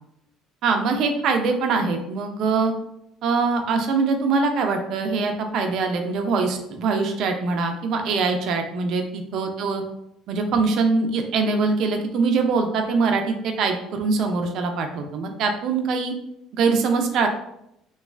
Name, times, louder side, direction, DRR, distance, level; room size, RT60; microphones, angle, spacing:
voice 1, 0.6-2.7 3.2-9.8 10.3-16.1 16.5-17.3, right 4 dB, 65° right, 5 dB, 0.4 m, -23 dB
3.1 x 2.3 x 2.4 m, 0.79 s
cardioid pair, 100°, 0 cm